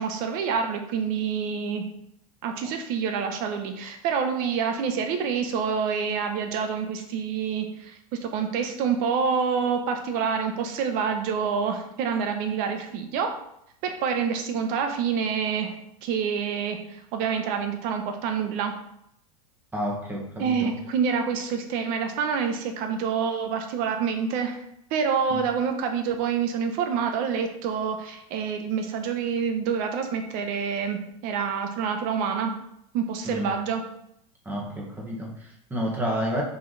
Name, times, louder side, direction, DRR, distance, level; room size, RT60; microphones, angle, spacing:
voice 1, 0.0-1.8 2.4-13.3 13.8-15.7 16.0-18.7 20.4-24.6 24.9-32.5 32.9-33.8, right 6 dB, 45° right, 5 dB, 1.1 m, -27 dB
voice 2, 19.7-20.7 25.3-25.4 33.2-33.5 34.4-36.4, equal, 10° right, -2 dB, 1.7 m, -30 dB
5.6 x 4.9 x 4.2 m, 0.75 s
supercardioid pair, 140°, 20 cm